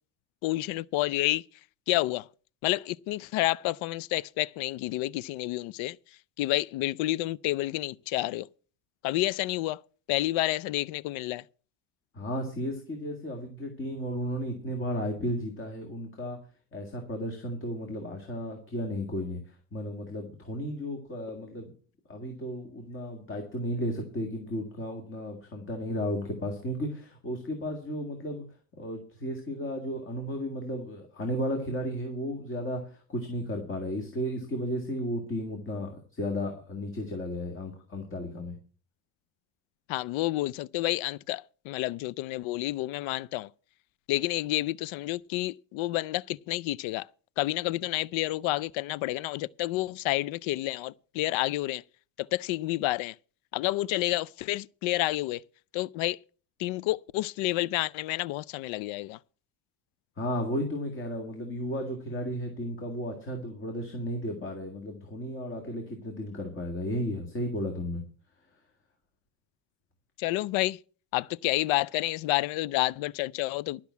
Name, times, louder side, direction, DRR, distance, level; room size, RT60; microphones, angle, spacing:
voice 1, 0.4-1.4 1.9-2.2 2.6-6.0 6.4-8.5 9.0-9.8 10.1-11.4 39.9-43.5 44.1-47.1 47.4-51.8 52.3-53.1 53.5-55.4 55.7-56.2 56.6-59.2 70.2-70.8 71.1-73.8, left 17 dB, 75° left, 0.5 m, -29 dB
voice 2, 12.1-16.4 16.7-21.7 22.1-28.4 28.8-38.6 60.2-68.0, equal, 25° left, 2.0 m, -34 dB
12.0 x 6.0 x 8.3 m
cardioid pair, 170°, 47 cm